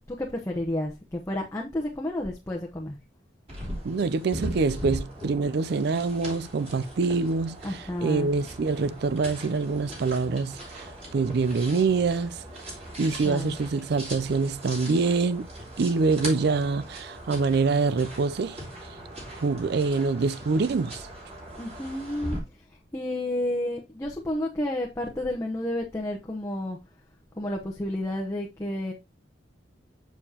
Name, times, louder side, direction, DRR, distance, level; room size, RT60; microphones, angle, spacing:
voice 1, 0.2-3.0 7.6-8.3 13.2-13.6 21.6-22.4 22.9-26.8 27.4-28.9, left 1 dB, 15° left, 0.8 m, -31 dB
sound 1, 3.5-22.4, right 1 dB, 35° right, 4.5 m, -39 dB
voice 2, 3.8-15.5 15.8-18.6 18.9-19.0 19.3-21.1, right 4 dB, 60° right, 0.4 m, -25 dB
7.0 x 6.9 x 2.8 m
head